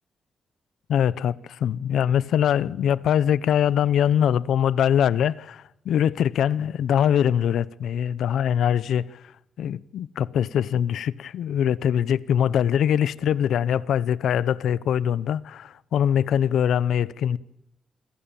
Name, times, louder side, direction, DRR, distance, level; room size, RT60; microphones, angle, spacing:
voice 1, 0.9-9.2 9.6-17.4, left 9 dB, 85° left, 0.8 m, -23 dB
28.5 x 21.5 x 7.3 m
wide cardioid pair, 170°, 0 cm